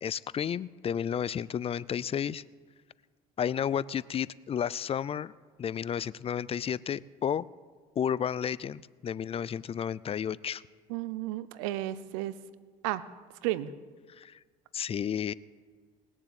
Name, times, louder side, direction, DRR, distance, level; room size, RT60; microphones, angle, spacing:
voice 1, 0.0-2.4 3.4-5.3 5.6-7.5 8.0-10.6 14.2-14.4 14.7-15.3, left 8 dB, 35° left, 20 dB, 0.5 m, -32 dB
voice 2, 10.9-12.4 12.8-13.0 13.4-13.7, right 15 dB, 85° right, 17 dB, 0.7 m, -32 dB
20.0 x 7.3 x 8.2 m, 1.5 s
supercardioid pair, 75°, 17 cm